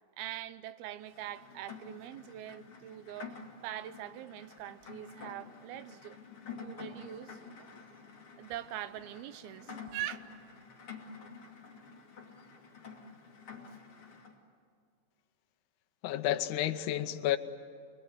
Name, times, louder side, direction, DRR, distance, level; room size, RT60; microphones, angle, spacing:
voice 1, 0.2-3.4 3.6-6.2 6.6-7.7 8.4-10.2, right 12 dB, 90° right, 2.7 m, -43 dB
Rain, 1.0-14.4, left 5 dB, 40° left, 3.2 m, -49 dB
voice 2, 16.0-17.4, left 12 dB, 70° left, 2.1 m, -31 dB
28.0 x 21.5 x 9.6 m
omnidirectional pair, 4.3 m